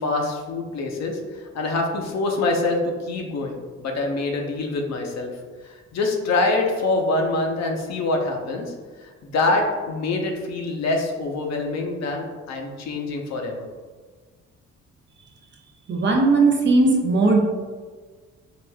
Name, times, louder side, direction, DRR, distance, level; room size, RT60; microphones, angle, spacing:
voice 1, 0.0-5.3 5.6-8.7 9.0-13.7, left 2 dB, 60° left, 1 dB, 0.7 m, -25 dB
voice 2, 15.9-17.4, right 3 dB, 40° right, 1 dB, 0.6 m, -18 dB
4.7 x 2.4 x 2.2 m, 1.4 s
cardioid pair, 90°, 30 cm